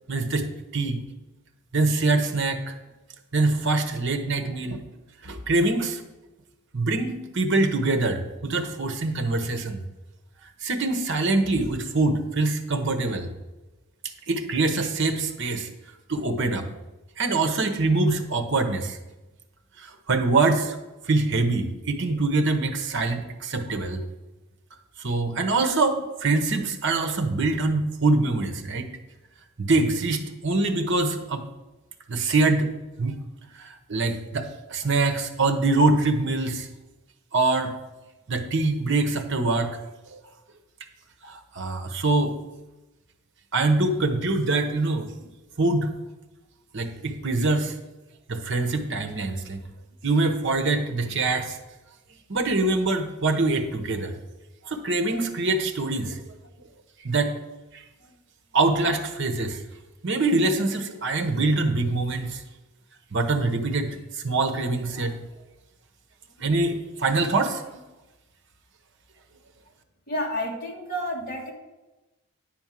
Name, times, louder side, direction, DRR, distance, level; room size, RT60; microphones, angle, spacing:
voice 1, 0.1-1.0 1.7-2.7 3.3-4.8 5.2-6.0 6.7-9.8 10.6-13.3 14.3-15.7 16.1-16.7 17.2-19.0 19.8-20.8 21.0-24.0 25.0-28.9 29.6-31.4 32.1-32.7 33.0-33.2 33.5-36.7 37.3-37.7 38.3-39.8 40.1-40.2 41.2-42.3 43.5-45.1 45.6-45.9 46.7-47.7 48.3-49.6 50.0-51.6 52.3-54.2 54.6-56.2 57.0-57.4 57.7-57.8 58.5-59.6 60.0-62.4 63.1-65.1 66.4-67.8, right 3 dB, 55° right, 6 dB, 1.0 m, -24 dB
voice 2, 70.1-71.5, equal, 40° left, -1 dB, 2.0 m, -30 dB
10.5 x 4.4 x 7.5 m, 1.1 s
head